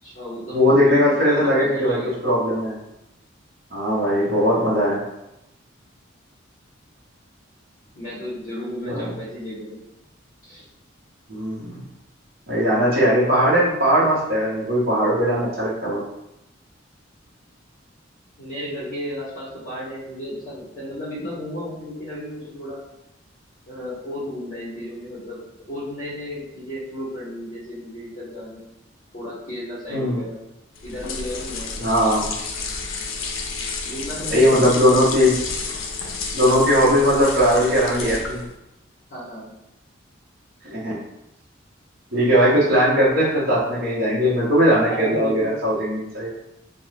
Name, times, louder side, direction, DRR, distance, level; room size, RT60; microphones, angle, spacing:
voice 1, 0.0-2.4 7.9-9.8 10.4-10.6 18.4-22.8 23.7-28.7 29.1-30.4 30.8-31.9 33.8-35.0 35.7-35.9 39.1-39.5 44.9-45.5, left 1 dB, 40° left, -9 dB, 1.1 m, -33 dB
voice 2, 0.5-2.8 3.7-5.0 8.9-9.0 11.3-11.8 12.5-16.0 29.9-30.2 31.8-32.3 34.3-35.3 36.3-38.4 40.7-41.0 42.1-46.3, equal, 50° right, -8 dB, 0.8 m, -19 dB
sound 1, 30.7-38.6, left 4 dB, 90° left, 0.4 m, -31 dB
2.3 x 2.2 x 3.1 m, 0.88 s
head